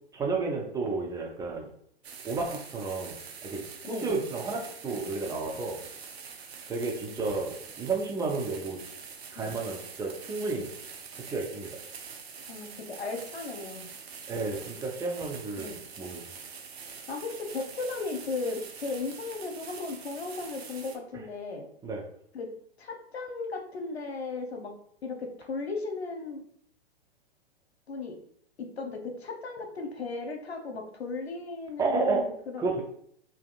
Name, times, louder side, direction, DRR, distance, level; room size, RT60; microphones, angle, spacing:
voice 1, 0.1-1.7 2.2-3.2 3.4-5.8 6.7-8.8 9.3-10.7 11.1-11.7 14.3-16.3 21.8-22.0 31.8-32.2 32.6-32.8, right 3 dB, 10° right, -1 dB, 0.5 m, -31 dB
sound 1, 2.0-21.0, right 6 dB, 75° right, 0.8 m, -45 dB
voice 2, 3.8-4.2 9.3-9.5 12.5-13.9 15.6-15.8 17.1-21.7 22.3-22.5 22.8-24.7 25.0-26.4 27.9-28.2 28.6-32.6, left 3 dB, 80° left, 4 dB, 0.9 m, -36 dB
5.0 x 2.7 x 2.4 m, 0.67 s
figure-of-eight pair, 105°, 32 cm